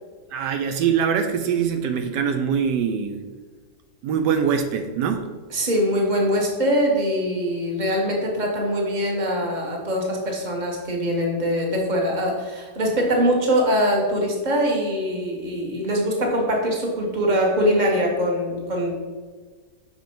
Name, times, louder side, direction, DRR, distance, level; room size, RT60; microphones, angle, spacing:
voice 1, 0.3-3.2 4.0-5.3, right 7 dB, 80° right, 6 dB, 1.2 m, -23 dB
voice 2, 5.5-19.0, equal, 30° right, -1 dB, 1.4 m, -23 dB
6.1 x 4.9 x 5.3 m, 1.4 s
omnidirectional pair, 1.8 m